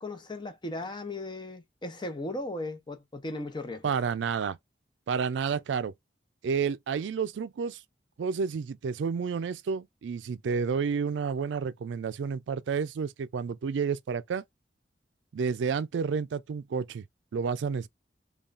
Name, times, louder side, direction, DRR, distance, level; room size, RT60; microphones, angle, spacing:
voice 1, 0.0-3.9, left 2 dB, 25° left, 0.7 m, -37 dB
voice 2, 3.8-4.6 5.1-5.9 6.4-7.8 8.2-14.4 15.3-17.0 17.3-17.9, right 6 dB, 85° right, 0.4 m, -30 dB
5.3 x 2.3 x 2.4 m
head